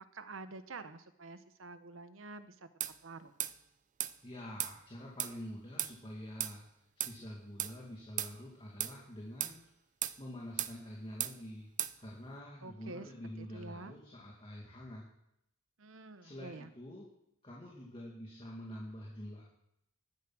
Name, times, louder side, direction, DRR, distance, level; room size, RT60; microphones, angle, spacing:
voice 1, 0.0-2.7 3.0-3.3 12.6-13.1 13.4-13.9 15.8-16.7, right 3 dB, 85° right, 11 dB, 1.0 m, -48 dB
sound 1, 2.8-3.0 3.4-3.6 4.0-4.1 4.6-4.8 5.2-5.4 5.8-5.9 6.4-6.6 7.0-7.2 7.6-7.7 8.2-8.3 8.8-9.0 9.4-9.6 10.0-10.2 10.6-10.8 11.2-11.4 11.8-12.0, right 12 dB, 40° right, 0.5 m, -36 dB
voice 2, 4.2-9.6 10.2-11.7 12.0-15.0 16.2-17.0 17.4-19.4, equal, 25° left, -3 dB, 2.3 m, -47 dB
13.5 x 9.8 x 6.2 m, 0.81 s
head